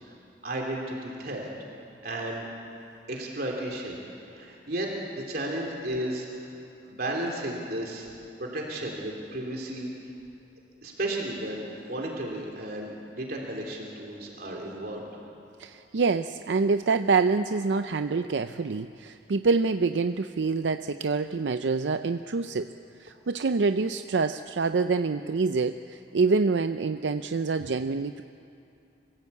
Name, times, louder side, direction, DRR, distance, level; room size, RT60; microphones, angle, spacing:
voice 1, 0.4-1.5 2.0-2.5 3.1-8.1 8.4-9.9 10.8-15.1, right 1 dB, 60° right, -1 dB, 3.1 m, -34 dB
voice 2, 15.6-22.7 23.0-28.2, right 4 dB, 85° right, 9 dB, 0.5 m, -26 dB
25.5 x 16.5 x 8.4 m, 2.6 s
head